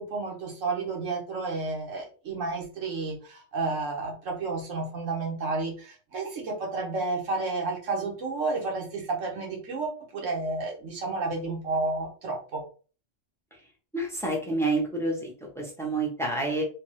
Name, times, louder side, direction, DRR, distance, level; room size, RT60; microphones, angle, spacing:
voice 1, 0.0-12.6, right 3 dB, 80° right, 0 dB, 1.3 m, -31 dB
voice 2, 13.9-16.6, right 2 dB, 5° left, -1 dB, 0.6 m, -28 dB
3.4 x 2.3 x 3.0 m, 0.38 s
omnidirectional pair, 1.3 m